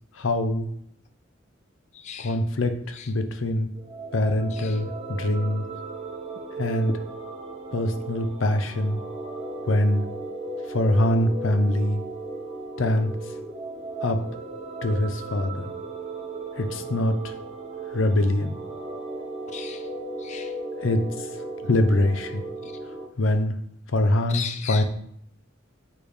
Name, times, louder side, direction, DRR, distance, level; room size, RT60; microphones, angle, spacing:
voice 1, 0.2-0.7 2.2-3.7 4.1-5.6 6.6-6.9 7.7-9.0 9.7-10.0 10.7-12.0 12.8-13.1 14.0-14.2 14.8-15.7 16.6-17.3 17.9-18.6 20.8-21.0 21.6-22.4 23.2-23.6 23.9-24.4 24.7-24.8, left 1 dB, 80° left, 8 dB, 0.6 m, -23 dB
voice 2, 1.9-2.4 2.9-3.1 4.5-4.8 6.9-7.0 19.5-19.9 20.2-20.6 22.6-22.8 24.3-24.8, left 7 dB, 35° left, 7 dB, 0.3 m, -37 dB
sound 1, 3.7-23.1, right 2 dB, 30° right, 0.7 m, -36 dB
8.4 x 3.3 x 3.4 m, 0.70 s
head